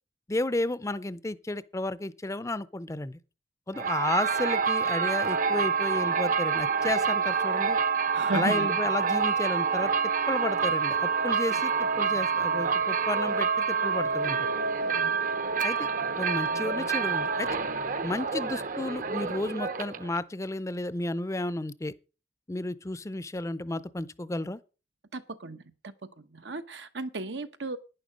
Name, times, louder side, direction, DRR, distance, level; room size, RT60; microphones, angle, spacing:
voice 1, 0.3-3.2 3.7-7.8 8.3-9.9 10.3-14.5 15.6-15.9 16.2-17.5 18.0-21.9 22.5-24.6, left 2 dB, 15° left, 0.5 m, -32 dB
sound 1, 3.7-20.2, right 5 dB, 50° right, 0.8 m, -27 dB
voice 2, 8.1-8.8 11.4-11.6 14.8-15.2 25.1-27.8, right 3 dB, 90° right, 1.1 m, -36 dB
11.5 x 10.0 x 5.1 m
head